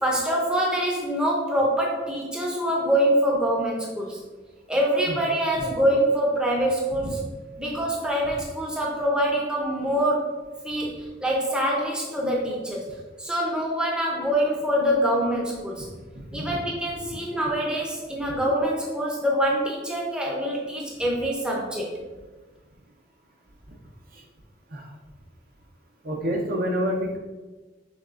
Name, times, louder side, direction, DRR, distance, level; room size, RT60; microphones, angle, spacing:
voice 1, 0.0-4.2 4.7-7.2 7.6-10.3 10.6-12.8 13.2-15.9 16.3-22.0, equal, 5° right, -2 dB, 0.6 m, -25 dB
voice 2, 16.1-16.5 17.1-17.2 24.1-24.2 24.7-24.9 26.0-27.2, equal, 50° right, 1 dB, 0.7 m, -28 dB
6.3 x 3.1 x 2.5 m, 1.3 s
head